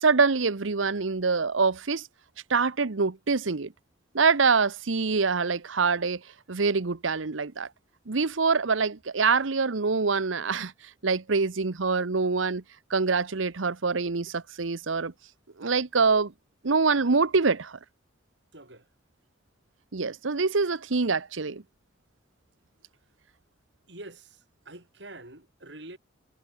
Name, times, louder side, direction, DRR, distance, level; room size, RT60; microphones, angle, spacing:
voice 1, 0.0-2.1 2.5-3.7 4.1-6.2 6.5-7.7 8.1-10.7 11.0-12.6 12.9-15.1 15.6-16.3 16.6-17.8 19.9-21.6, right 4 dB, 90° right, 1.0 m, -25 dB
voice 2, 18.5-18.9 23.9-26.0, right 2 dB, 60° right, 6.0 m, -46 dB
head